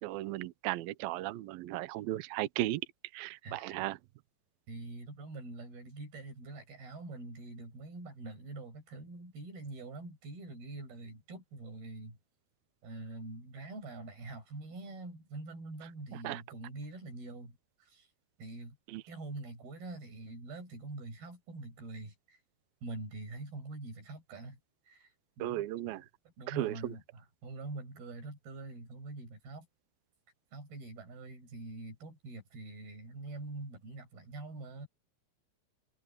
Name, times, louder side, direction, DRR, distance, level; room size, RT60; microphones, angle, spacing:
voice 1, 0.0-2.8 3.1-4.0 16.1-16.4 18.9-19.0 25.4-26.1 26.5-26.9, right 16 dB, 80° right, 2.1 m, -36 dB
voice 2, 3.4-3.9 4.7-12.2 12.8-18.1 18.4-18.8 19.1-22.4 22.8-24.6 24.9-25.1 25.4-26.0 26.4-29.7 30.5-34.9, right 2 dB, 55° right, 9.3 m, -45 dB
omnidirectional pair, 5.3 m